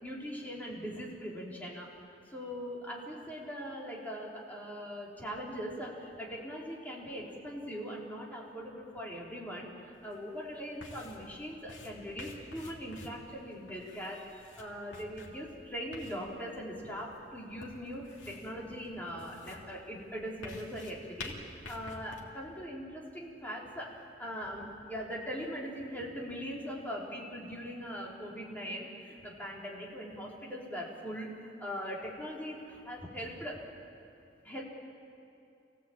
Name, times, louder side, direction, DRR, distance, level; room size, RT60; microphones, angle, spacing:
voice 1, 0.0-1.9 2.3-33.6 34.4-34.6, equal, 10° left, -4 dB, 4.0 m, -41 dB
sound 1, 10.0-22.2, left 2 dB, 80° left, 3.0 m, -50 dB
26.0 x 17.0 x 8.9 m, 2.6 s
head